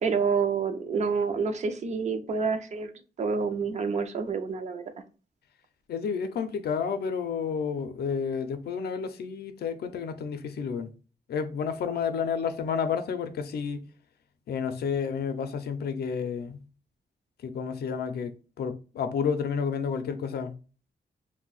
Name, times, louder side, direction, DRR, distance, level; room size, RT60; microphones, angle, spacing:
voice 1, 0.0-2.9 3.2-4.8, right 5 dB, 45° right, 0.4 m, -28 dB
voice 2, 5.9-10.9 11.3-13.8 14.5-16.6 17.4-20.5, left 6 dB, 80° left, 0.4 m, -30 dB
2.6 x 2.1 x 3.8 m
wide cardioid pair, 175°, 16 cm